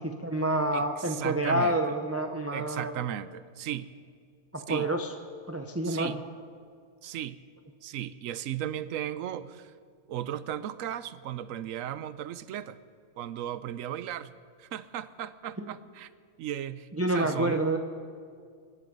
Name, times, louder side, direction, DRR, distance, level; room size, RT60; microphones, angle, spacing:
voice 1, 0.0-2.9 4.5-5.1 5.5-6.2 15.6-15.7 16.9-17.8, right 1 dB, 15° right, 4 dB, 0.5 m, -28 dB
voice 2, 0.7-1.8 2.5-3.9 4.7-4.9 5.8-6.2 7.0-7.4 7.8-9.7 10.1-12.8 13.2-14.3 14.6-16.1 16.4-17.6, right 11 dB, 70° right, 15 dB, 1.0 m, -36 dB
24.5 x 11.0 x 5.4 m, 2.2 s
omnidirectional pair, 1.6 m